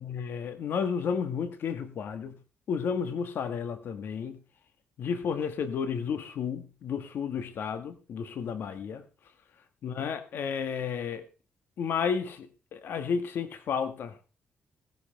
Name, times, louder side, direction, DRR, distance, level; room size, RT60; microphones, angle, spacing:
voice 1, 0.0-2.4 2.7-4.4 5.0-9.0 9.8-11.2 11.8-14.1, left 6 dB, 75° left, 1.6 m, -32 dB
16.5 x 11.0 x 3.4 m
cardioid pair, 65°, 4 cm